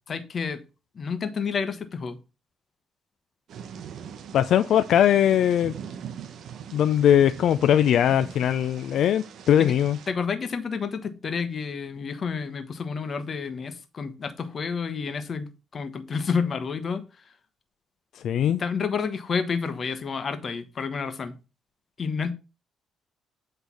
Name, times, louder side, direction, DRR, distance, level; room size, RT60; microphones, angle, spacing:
voice 1, 0.1-0.6 0.9-2.2 9.6-9.7 10.1-17.0 18.6-21.4 22.0-22.3, left 5 dB, 45° left, 1.0 m, -30 dB
Thunder / Rain, 3.5-10.1, right 8 dB, 70° right, 0.7 m, -42 dB
voice 2, 4.3-5.7 6.7-10.0 18.2-18.6, left 10 dB, 75° left, 0.4 m, -20 dB
8.2 x 3.3 x 5.5 m
cardioid pair, 90°, 0 cm